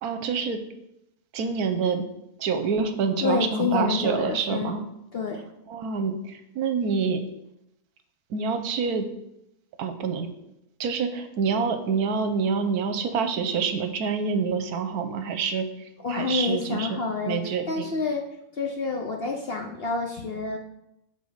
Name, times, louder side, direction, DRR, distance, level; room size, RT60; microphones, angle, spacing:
voice 1, 0.0-0.6 1.3-2.0 2.4-4.8 5.7-7.2 8.3-9.1 9.8-10.3 10.8-17.0 17.3-17.9, right 5 dB, 75° right, 8 dB, 1.2 m, -27 dB
voice 2, 3.2-4.8 5.1-5.4 16.0-17.4 17.7-18.2 18.5-20.6, left 4 dB, 50° left, 3 dB, 0.7 m, -28 dB
6.9 x 4.3 x 6.4 m, 0.84 s
omnidirectional pair, 1.6 m